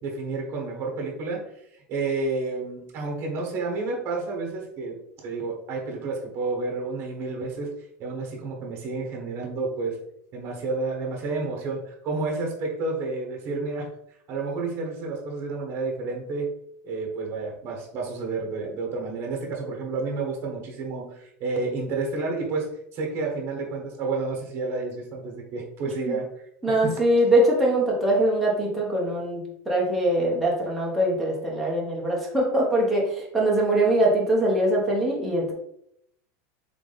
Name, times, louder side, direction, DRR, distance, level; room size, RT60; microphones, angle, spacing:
voice 1, 0.0-7.7 8.0-10.0 10.3-13.9 14.3-16.5 16.8-26.3 26.8-26.9, right 3 dB, 30° right, 0 dB, 1.1 m, -30 dB
voice 2, 26.6-35.5, right 1 dB, ahead, -5 dB, 0.8 m, -22 dB
3.7 x 3.5 x 3.9 m, 0.75 s
supercardioid pair, 170°, 8 cm